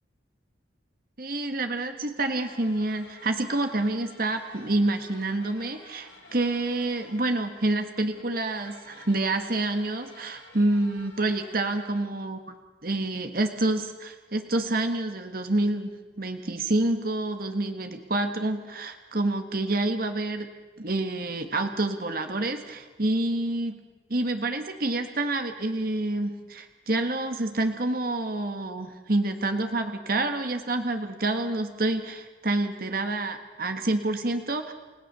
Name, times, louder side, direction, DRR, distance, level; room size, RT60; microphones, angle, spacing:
voice 1, 1.2-12.4 12.8-15.9 16.2-20.5 20.8-23.7 24.1-34.7, right 2 dB, 55° right, 6 dB, 1.6 m, -28 dB
sound 1, 2.2-11.8, left 3 dB, 85° left, 7.9 m, -51 dB
30.0 x 16.5 x 6.8 m, 1.2 s
head